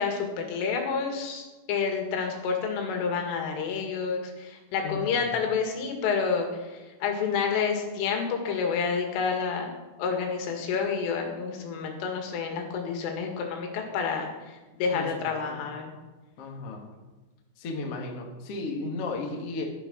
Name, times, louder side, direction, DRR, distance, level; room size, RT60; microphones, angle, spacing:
voice 1, 0.0-1.4 1.7-6.7 7.0-9.7 10.0-15.9, left 5 dB, 80° left, 3 dB, 4.5 m, -29 dB
voice 2, 4.8-5.4 14.9-15.7 16.4-16.8 17.6-19.7, left 3 dB, 55° left, 1 dB, 1.7 m, -35 dB
13.5 x 10.0 x 6.1 m, 1.2 s
omnidirectional pair, 5.6 m